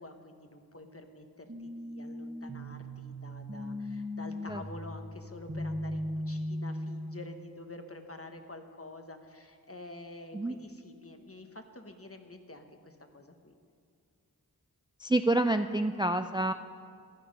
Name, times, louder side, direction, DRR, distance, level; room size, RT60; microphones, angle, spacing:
voice 1, 0.0-13.5, left 2 dB, 35° left, 6 dB, 1.2 m, -48 dB
sound 1, 1.5-7.4, left 1 dB, 35° right, 1.6 m, -38 dB
voice 2, 15.0-16.5, right 2 dB, 15° right, 8 dB, 0.4 m, -28 dB
15.0 x 11.0 x 5.3 m, 2.2 s
wide cardioid pair, 40°, 38 cm